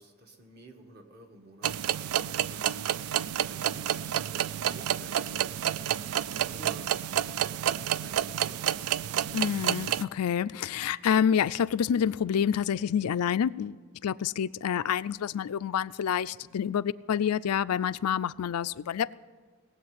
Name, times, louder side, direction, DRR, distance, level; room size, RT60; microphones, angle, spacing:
voice 1, 0.0-1.7 2.5-2.8 3.2-5.8 6.4-6.9 7.2-8.7 16.4-16.5, right 2 dB, 45° right, 3 dB, 1.7 m, -51 dB
sound 1, 1.6-10.0, right 10 dB, 80° right, 0.4 m, -29 dB
voice 2, 9.3-19.2, left 8 dB, 85° left, 16 dB, 0.4 m, -28 dB
19.0 x 7.9 x 9.5 m, 1.5 s
head